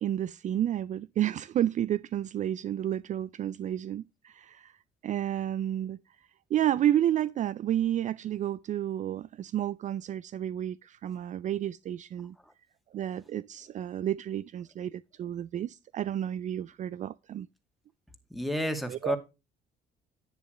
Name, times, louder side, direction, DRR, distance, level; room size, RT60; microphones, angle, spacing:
voice 1, 0.0-4.7 5.0-6.0 6.5-12.3 12.9-17.5 18.9-19.1, right 11 dB, 45° right, 0.4 m, -31 dB
voice 2, 18.3-19.2, equal, ahead, 2.2 m, -30 dB
10.5 x 9.8 x 3.0 m
cardioid pair, 110°, 17 cm